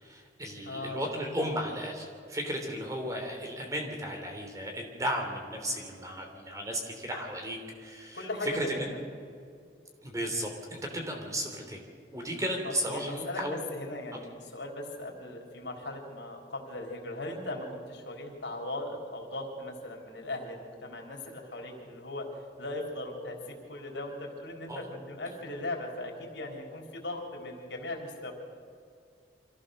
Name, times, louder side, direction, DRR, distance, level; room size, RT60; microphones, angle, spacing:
voice 1, 0.0-8.9 10.0-11.8 12.1-13.6 24.7-24.8, equal, 20° right, 2 dB, 3.1 m, -35 dB
voice 2, 0.6-1.2 8.1-8.8 12.6-22.3 22.6-28.3, left 1 dB, 85° left, 1 dB, 3.8 m, -38 dB
25.5 x 15.5 x 6.6 m, 2.4 s
head